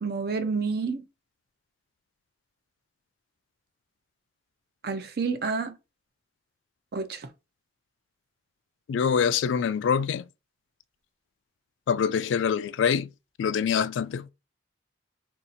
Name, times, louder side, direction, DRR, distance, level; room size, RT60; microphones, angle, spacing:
voice 1, 0.0-1.0 4.8-5.8 6.9-7.3, right 4 dB, 55° right, 0.5 m, -29 dB
voice 2, 8.9-10.3 11.9-13.1 13.4-14.3, left 7 dB, 85° left, 0.3 m, -25 dB
2.7 x 2.4 x 3.9 m
head